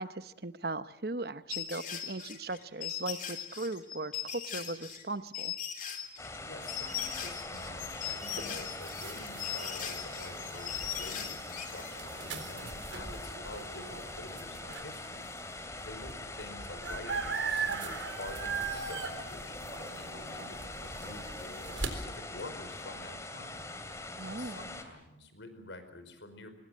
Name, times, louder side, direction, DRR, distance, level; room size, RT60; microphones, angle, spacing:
voice 1, 0.0-5.5 24.2-24.6, right 2 dB, 55° right, 12 dB, 1.0 m, -38 dB
sound 1, 1.5-11.9, left 10 dB, 45° left, 3.4 m, -39 dB
voice 2, 6.1-23.7 23.9-26.5, left 2 dB, 85° left, 9 dB, 4.8 m, -48 dB
sound 2, 6.2-24.8, left 2 dB, 15° left, 2.7 m, -43 dB
sound 3, 6.6-15.1 15.6-15.7 15.9-21.9, right 5 dB, 85° right, 3.9 m, -40 dB
25.5 x 20.5 x 7.6 m, 0.88 s
head